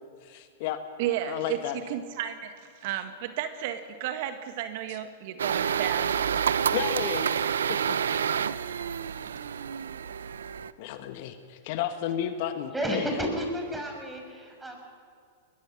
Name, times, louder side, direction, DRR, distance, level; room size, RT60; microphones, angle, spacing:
voice 1, 0.0-0.8 1.3-1.8 6.7-8.0 10.8-13.3, left 11 dB, 55° left, 8 dB, 1.7 m, -33 dB
voice 2, 1.0-2.5 2.8-6.1, right 10 dB, 55° right, 9 dB, 1.5 m, -33 dB
sound 1, 5.4-10.7, right 8 dB, 80° right, 0.7 m, -28 dB
voice 3, 12.7-14.7, equal, 10° right, 2 dB, 5.7 m, -31 dB
22.0 x 20.5 x 6.2 m, 2.3 s
hypercardioid pair, 110°, 0 cm